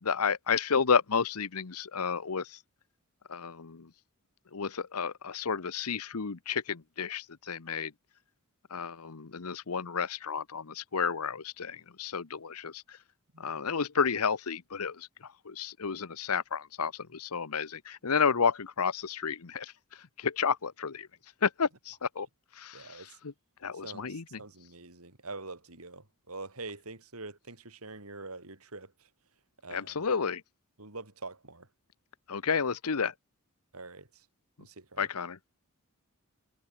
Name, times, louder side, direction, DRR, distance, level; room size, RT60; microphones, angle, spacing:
voice 1, 0.0-2.6 3.3-3.9 4.5-7.9 8.7-13.0 13.4-21.1 21.4-22.3 22.5-23.3 23.6-24.4 29.7-30.4 32.3-33.1 35.0-35.4, left 6 dB, 85° left, 0.9 m, -31 dB
voice 2, 22.7-23.2 23.7-29.1 29.6-30.1 30.8-31.7 33.7-34.3 34.6-35.1, right 3 dB, 80° right, 4.5 m, -45 dB
head